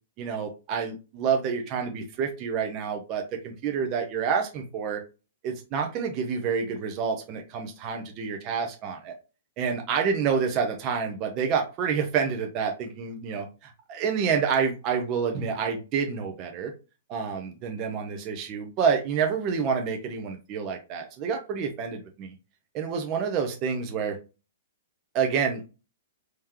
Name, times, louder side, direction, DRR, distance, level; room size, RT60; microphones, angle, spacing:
voice 1, 0.2-5.0 5.4-9.1 9.6-16.7 17.1-22.3 22.7-24.2 25.1-25.6, right 6 dB, 35° right, 3 dB, 0.8 m, -28 dB
3.6 x 3.1 x 2.9 m, 0.30 s
hypercardioid pair, 135°, 0 cm